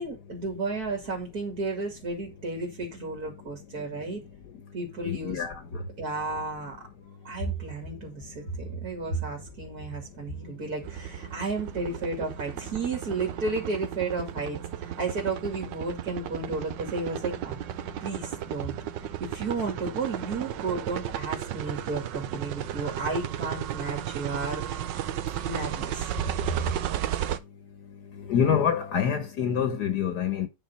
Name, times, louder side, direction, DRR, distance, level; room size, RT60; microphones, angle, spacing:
voice 1, 0.0-4.2 4.7-5.4 6.0-6.9 7.2-17.6 18.0-24.9 25.4-26.1 26.6-26.7, right 3 dB, 55° right, 2.8 m, -33 dB
voice 2, 5.0-5.6 28.2-30.5, left 8 dB, 65° left, 1.5 m, -26 dB
sound 1, 10.8-27.4, right 11 dB, 80° right, 1.4 m, -34 dB
9.3 x 4.3 x 5.5 m
omnidirectional pair, 2.0 m